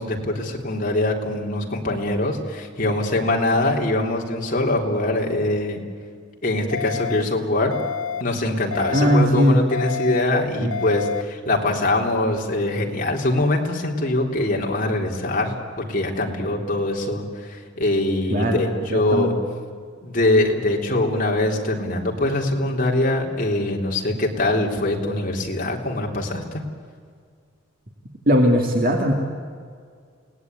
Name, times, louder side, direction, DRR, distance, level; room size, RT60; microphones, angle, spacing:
voice 1, 0.0-5.8 6.4-7.7 8.2-19.3 20.0-26.6, left 2 dB, 40° left, 0 dB, 3.5 m, -23 dB
sound 1, 6.7-7.2 7.7-8.2 8.7-9.2 9.7-10.2 10.7-11.2, left 7 dB, 80° left, 0.6 m, -29 dB
voice 2, 8.9-9.6 10.6-10.7 18.3-19.4 28.3-29.1, equal, 45° right, 2 dB, 2.3 m, -19 dB
30.0 x 18.5 x 9.6 m, 2.1 s
head